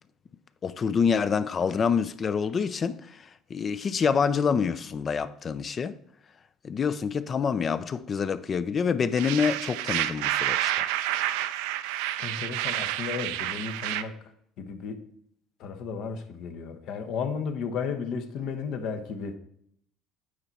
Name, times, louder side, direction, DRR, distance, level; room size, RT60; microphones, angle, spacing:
voice 1, 0.6-6.0 6.6-10.9, left 6 dB, 35° left, 0.4 m, -27 dB
sound 1, 9.2-14.0, right 13 dB, 85° right, 0.4 m, -29 dB
voice 2, 12.2-14.1 14.6-15.0 15.6-19.4, left 6 dB, 65° left, 0.9 m, -33 dB
8.6 x 4.5 x 4.1 m
cardioid pair, 115°, 0 cm